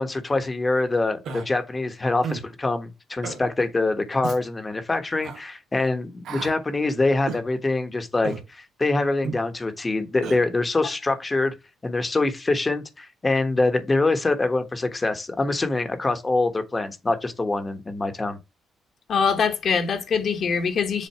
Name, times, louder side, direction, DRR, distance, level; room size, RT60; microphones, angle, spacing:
voice 1, 0.0-11.5 11.8-18.4, left 2 dB, 25° left, 1.2 m, -24 dB
Human voice, 1.2-1.5 2.2-2.5 3.2-3.4 4.2-4.4 5.2-5.4 6.2-6.6 7.3-7.5 8.2-8.5 9.2-9.4 10.2-10.4, right 5 dB, 75° right, 1.2 m, -32 dB
voice 2, 19.1-21.1, left 6 dB, 55° left, 1.6 m, -23 dB
7.4 x 2.5 x 5.6 m
cardioid pair, 90°, 0 cm